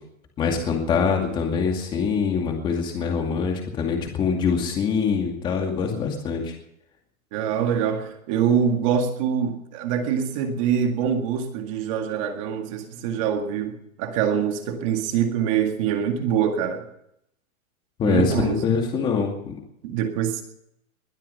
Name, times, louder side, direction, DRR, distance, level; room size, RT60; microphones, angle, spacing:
voice 1, 0.4-6.5 18.0-19.5, left 6 dB, 10° left, 2 dB, 2.3 m, -24 dB
voice 2, 7.3-16.9 18.0-18.6 19.8-20.4, right 8 dB, 25° right, 5 dB, 2.0 m, -24 dB
21.0 x 12.0 x 5.7 m, 0.77 s
hypercardioid pair, 175°, 42 cm